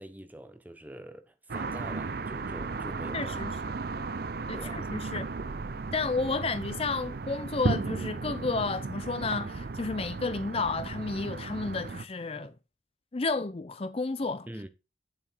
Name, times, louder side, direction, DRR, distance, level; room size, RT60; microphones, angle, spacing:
voice 1, 0.0-3.6 4.5-4.9 14.5-14.7, right 1 dB, 10° right, 0.9 m, -45 dB
sound 1, 1.5-12.0, right 3 dB, 50° right, 0.6 m, -35 dB
voice 2, 3.1-3.5 4.5-5.3 5.9-12.5 13.1-14.5, left 3 dB, 30° left, 0.5 m, -31 dB
8.8 x 7.2 x 4.5 m
head